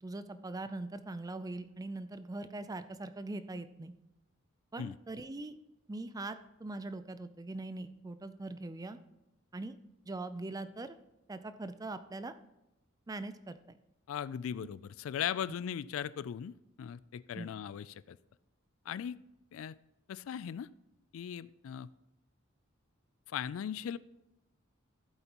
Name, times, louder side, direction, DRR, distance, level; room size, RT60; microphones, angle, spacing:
voice 1, 0.0-3.9 4.7-5.6 5.9-9.0 9.5-9.8 10.1-11.0 11.3-12.3 13.1-13.8 17.3-17.5, right 2 dB, 15° right, 11 dB, 0.4 m, -41 dB
voice 2, 14.1-18.2 18.9-19.2 19.5-19.7 20.1-20.7 21.1-21.9 23.3-24.0, left 9 dB, 75° left, 18 dB, 0.3 m, -38 dB
14.5 x 8.0 x 3.0 m, 0.93 s
head